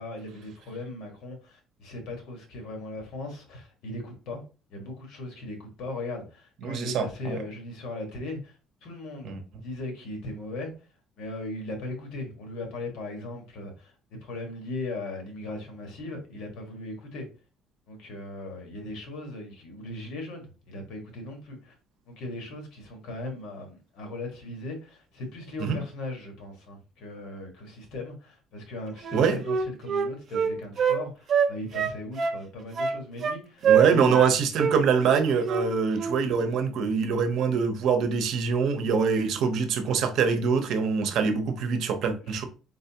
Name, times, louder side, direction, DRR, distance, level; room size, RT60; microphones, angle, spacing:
voice 1, 0.0-4.4 4.7-8.6 8.8-9.4 9.6-10.7 11.2-17.3 17.9-21.7 22.1-34.2 42.2-42.4, left 2 dB, 70° left, 1.6 m, -38 dB
voice 2, 6.6-7.4 9.2-9.4 25.6-25.8 29.1-29.4 33.6-42.4, right 6 dB, 55° right, 0.9 m, -24 dB
Wind instrument woodwind instrument, 29.0-31.0 31.3-32.4 32.8-33.4 33.6-34.3 34.6-34.8 35.0-35.7 35.9-36.2, right 7 dB, 35° right, 0.5 m, -24 dB
4.7 x 3.9 x 2.9 m
cardioid pair, 170°, 0 cm